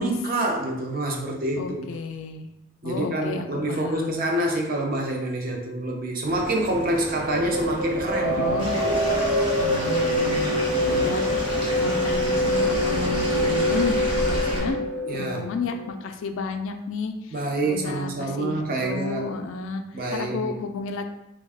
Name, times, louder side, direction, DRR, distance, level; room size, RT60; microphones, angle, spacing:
voice 1, 0.0-1.9 2.8-9.0 15.0-15.5 17.3-19.3 19.9-20.5, right 1 dB, 40° right, 1 dB, 0.5 m, -27 dB
voice 2, 1.6-2.5 2.8-4.2 8.2-8.8 9.6-14.8 15.1-19.8 20.1-21.0, left 4 dB, 65° left, 6 dB, 0.3 m, -32 dB
sound 1, 6.3-14.7, equal, 60° right, 0.9 m, -31 dB
sound 2, 7.9-15.9, left 1 dB, 85° right, 0.7 m, -25 dB
Stream / Liquid, 8.6-14.6, equal, 20° right, 0.8 m, -33 dB
3.4 x 2.3 x 3.3 m, 0.89 s
head